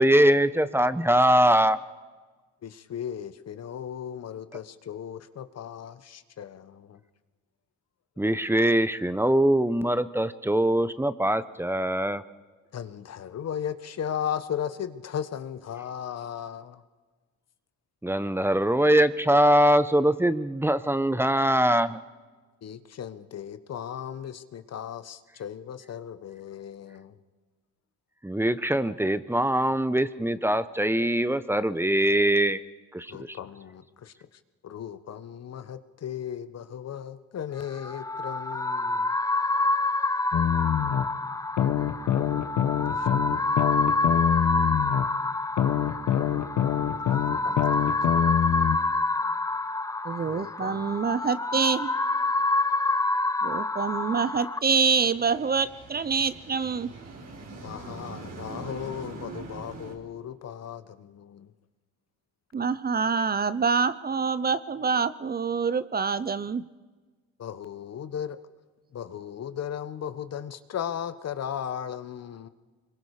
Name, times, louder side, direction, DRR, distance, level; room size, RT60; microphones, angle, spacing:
voice 1, 0.0-1.8 8.2-12.2 18.0-22.0 28.2-32.6 32.9-33.4, right 1 dB, 10° right, 14 dB, 0.9 m, -22 dB
voice 2, 2.6-7.0 12.7-16.8 22.6-27.2 33.1-34.1 34.6-39.1 42.9-43.1 43.3-43.5 47.1-48.2 50.3-51.0 57.6-61.5 67.4-68.4 68.9-72.5, left 9 dB, 55° left, 12 dB, 1.3 m, -36 dB
sound 1, 37.6-54.6, left 2 dB, 10° left, 0.6 m, -27 dB
sound 2, 40.3-41.0 41.6-45.0 45.6-48.8, left 10 dB, 80° left, 1.3 m, -25 dB
voice 3, 50.0-51.9 53.4-56.9 62.5-66.6, right 5 dB, 30° right, 16 dB, 0.7 m, -26 dB
sound 3, 54.7-59.9, right 3 dB, 60° right, 4.4 m, -42 dB
25.5 x 22.5 x 5.0 m, 1.3 s
cardioid pair, 90°, 30 cm